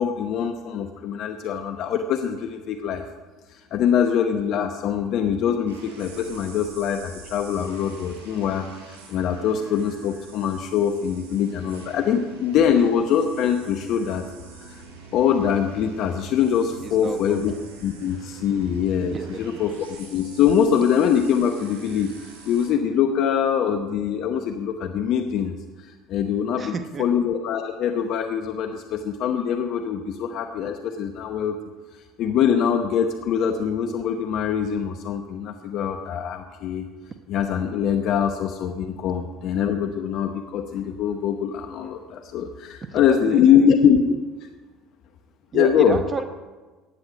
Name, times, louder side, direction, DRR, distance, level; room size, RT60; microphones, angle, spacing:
voice 1, 0.0-3.0 3.5-14.3 14.6-14.8 15.1-17.5 17.8-25.5 25.8-31.5 32.2-36.9 37.3-44.2 45.5-46.0, left 8 dB, 60° left, 6 dB, 0.9 m, -23 dB
sound 1, 5.7-22.7, right 3 dB, 80° right, 4.6 m, -45 dB
voice 2, 16.8-17.6 19.1-19.6 26.6-27.1 42.9-43.7 45.5-46.2, right 5 dB, 35° right, 9 dB, 0.9 m, -31 dB
15.5 x 9.9 x 5.2 m, 1.3 s
hypercardioid pair, 65°, 0 cm